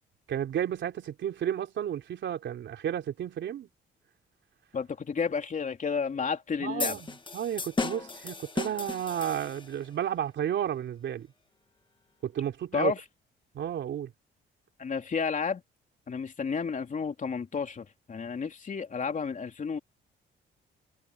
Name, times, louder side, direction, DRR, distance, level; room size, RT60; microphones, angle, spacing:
voice 1, 0.3-3.7 6.6-11.3 12.2-12.9 13.5-14.1, right 10 dB, 65° right, 3.4 m, -32 dB
voice 2, 4.7-7.0 12.7-13.0 14.8-15.6 16.1-19.8, left 5 dB, 40° left, 3.3 m, -31 dB
sound 1, 6.8-9.9, left 3 dB, 25° left, 1.7 m, -35 dB
cardioid pair, 90°, 20 cm